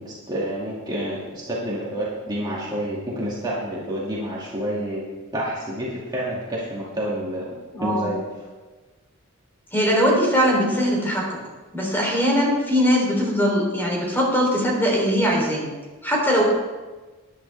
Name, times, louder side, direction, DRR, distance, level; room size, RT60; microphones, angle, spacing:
voice 1, 0.0-5.0 5.3-8.5, equal, 20° right, -6 dB, 2.3 m, -29 dB
voice 2, 7.7-8.1 9.7-11.4 11.7-15.7 16.0-16.4, equal, 10° left, -2 dB, 3.4 m, -21 dB
15.5 x 11.0 x 3.4 m, 1.3 s
head